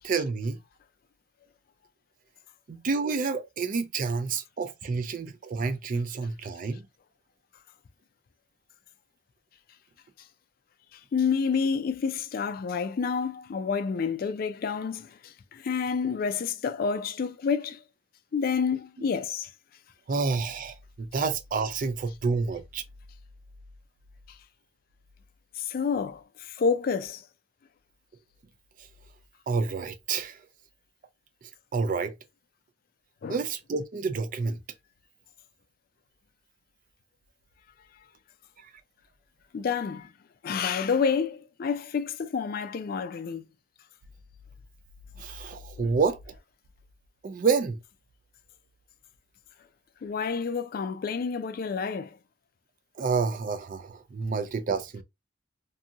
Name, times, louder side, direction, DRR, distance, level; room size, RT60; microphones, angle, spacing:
voice 1, 0.0-0.6 2.7-6.9 19.0-19.1 20.1-22.8 28.8-28.9 29.5-30.5 31.7-32.2 33.3-34.6 38.6-38.7 45.2-46.4 47.2-47.8 53.0-55.0, right 4 dB, 45° right, 0.4 m, -29 dB
voice 2, 10.9-17.8 18.3-19.5 25.6-27.2 33.2-33.4 39.5-40.1 40.4-43.5 45.8-45.9 50.0-52.1, left 6 dB, 50° left, 0.3 m, -29 dB
2.7 x 2.6 x 2.4 m
head